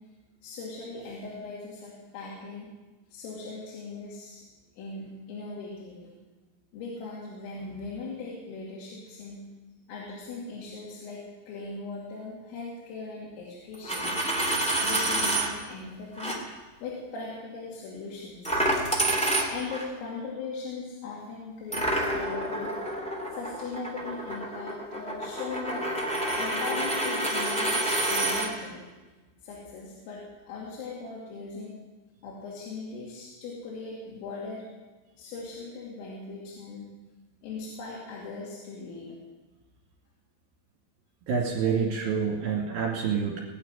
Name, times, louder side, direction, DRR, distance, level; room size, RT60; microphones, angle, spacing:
voice 1, 0.4-2.7 3.1-4.4 4.8-6.1 6.7-9.4 9.9-14.1 14.8-16.4 16.8-18.6 19.5-22.7 23.3-25.9 26.4-28.8 29.4-31.7 32.2-34.6 35.2-36.9 37.4-39.1, left 4 dB, 80° left, -5 dB, 5.1 m, -39 dB
Coin (dropping), 13.7-15.5 16.2-16.4 18.4-19.9 21.7-28.5, right 1 dB, 5° left, 1.1 m, -28 dB
voice 2, 41.3-43.4, right 6 dB, 55° right, -4 dB, 3.7 m, -27 dB
20.0 x 6.7 x 9.7 m, 1.2 s
omnidirectional pair, 5.9 m